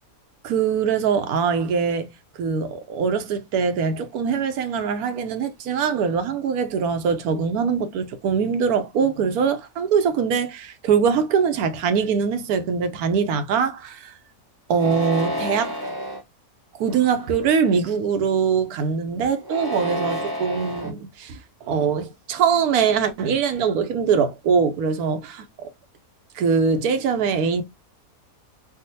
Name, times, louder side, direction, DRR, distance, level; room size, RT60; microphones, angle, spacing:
voice 1, 0.4-2.1 2.4-14.1 14.7-15.8 16.8-25.7 26.4-27.6, right 6 dB, 75° right, 1.1 m, -22 dB
sound 1, 14.7-16.2 16.9-17.4 19.4-20.9, equal, 20° right, 0.9 m, -29 dB
3.5 x 2.4 x 2.6 m
omnidirectional pair, 1.6 m